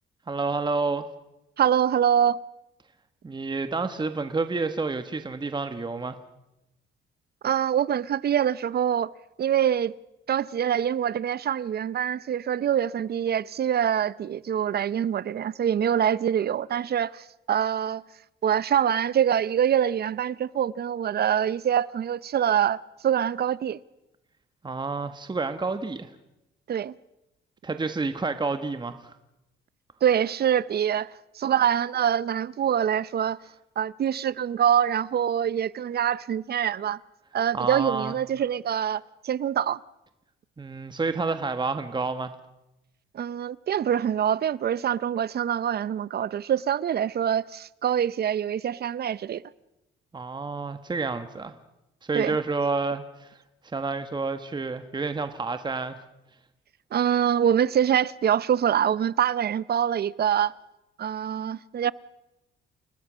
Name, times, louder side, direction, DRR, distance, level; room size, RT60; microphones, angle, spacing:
voice 1, 0.3-1.1 3.2-6.2 24.6-26.1 27.6-29.1 37.5-38.1 40.6-42.3 50.1-51.6 52.0-53.4 53.6-56.0, right 3 dB, 20° right, 1.4 m, -29 dB
voice 2, 1.6-2.4 7.4-9.1 9.4-9.9 10.3-18.0 18.4-23.8 26.7-26.9 30.0-33.4 33.8-37.0 37.3-39.8 43.1-49.4 52.1-52.4 56.9-60.5 61.0-61.9, right 9 dB, 55° right, 0.8 m, -25 dB
29.5 x 19.0 x 6.3 m
cardioid pair, 90°, 20 cm